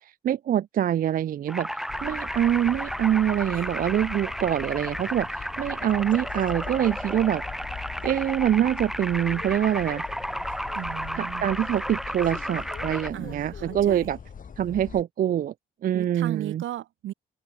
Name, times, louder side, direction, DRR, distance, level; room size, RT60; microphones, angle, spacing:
voice 1, 0.2-1.7 2.0-7.4 8.0-10.0 11.2-14.2 14.6-15.5 15.8-16.6, right 10 dB, 45° right, 0.4 m, -25 dB
sound 1, 1.5-13.1, equal, ahead, 3.3 m, -33 dB
sound 2, 1.9-15.0, left 6 dB, 45° left, 2.5 m, -41 dB
voice 2, 10.7-11.5 13.1-14.1 15.9-17.1, right 13 dB, 75° right, 1.5 m, -36 dB
open air
cardioid pair, 90°, 20 cm